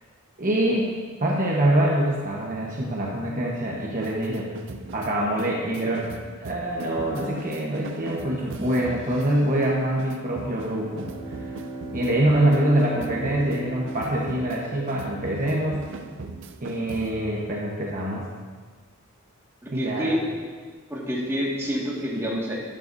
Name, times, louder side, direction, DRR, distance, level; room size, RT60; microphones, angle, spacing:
voice 1, 0.4-0.9 1.2-4.5 4.9-6.1 6.4-11.4 11.9-15.9 16.6-18.2 19.7-20.1, right 1 dB, 40° right, -3 dB, 1.1 m, -25 dB
sound 1, 3.8-17.3, right 3 dB, 60° right, 0.6 m, -40 dB
Bowed string instrument, 10.6-15.2, right 2 dB, 80° right, 1.1 m, -37 dB
voice 2, 19.6-20.2 20.9-22.6, equal, 10° right, -5 dB, 1.9 m, -27 dB
12.5 x 10.0 x 2.7 m, 1.5 s
head